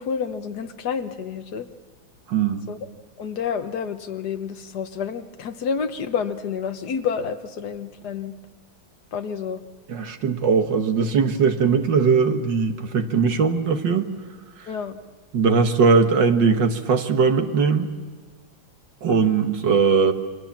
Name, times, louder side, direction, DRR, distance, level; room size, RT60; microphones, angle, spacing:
voice 1, 0.0-1.7 2.7-2.8 3.2-8.3 9.1-9.6 14.7-15.0, left 6 dB, 55° left, 9 dB, 1.5 m, -29 dB
voice 2, 2.3-2.6 9.9-14.1 15.3-17.9 19.0-20.1, right 5 dB, 60° right, 7 dB, 2.0 m, -20 dB
28.5 x 23.5 x 7.3 m, 1.4 s
omnidirectional pair, 2.2 m